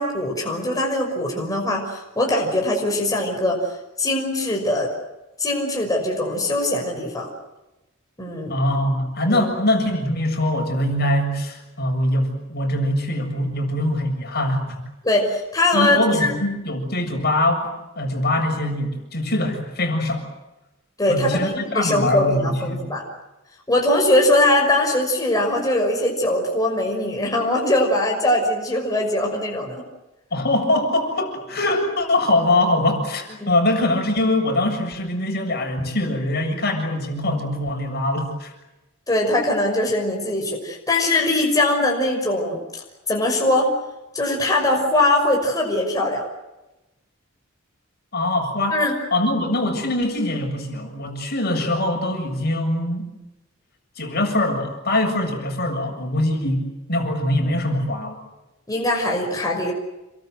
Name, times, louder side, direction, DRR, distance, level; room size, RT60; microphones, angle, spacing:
voice 1, 0.0-3.6 4.0-4.9 5.4-7.3 8.2-8.5 9.3-9.5 15.0-16.3 21.0-23.0 23.7-29.8 33.4-33.5 39.1-42.8 43.1-43.7 44.1-46.3 48.7-48.9 58.7-59.7, left 1 dB, 15° left, 0 dB, 5.9 m, -21 dB
voice 2, 8.5-14.6 15.7-20.3 21.1-22.9 30.3-38.5 48.1-48.8 49.1-53.1 54.0-58.2, left 1 dB, 50° left, 3 dB, 7.3 m, -23 dB
28.5 x 24.0 x 8.0 m, 1.0 s
head